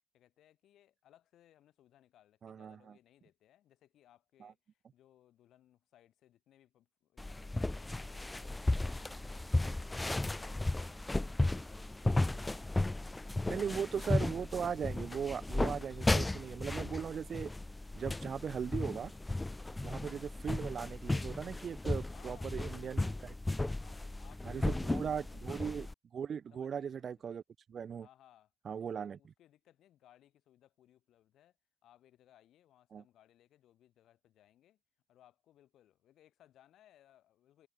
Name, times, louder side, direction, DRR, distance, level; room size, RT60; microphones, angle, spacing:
voice 1, 0.1-14.3 20.3-20.4 22.1-23.4 23.8-25.4 26.5-27.4 28.0-28.5 28.8-31.6 31.8-34.8 35.1-37.7, left 12 dB, 75° left, 3.7 m, -65 dB
voice 2, 2.4-2.8 4.4-4.5 12.1-12.2 13.5-17.5 18.0-19.1 19.8-23.1 23.5-23.6 24.4-25.9 26.1-27.4 27.7-28.1 28.7-29.2 32.9-33.0, right 7 dB, 55° right, 0.3 m, -38 dB
sound 1, 7.2-25.9, left 2 dB, 20° left, 0.5 m, -35 dB
Wind instrument woodwind instrument, 8.7-12.7, right 4 dB, 40° right, 2.1 m, -63 dB
hypercardioid pair, 50°, 0 cm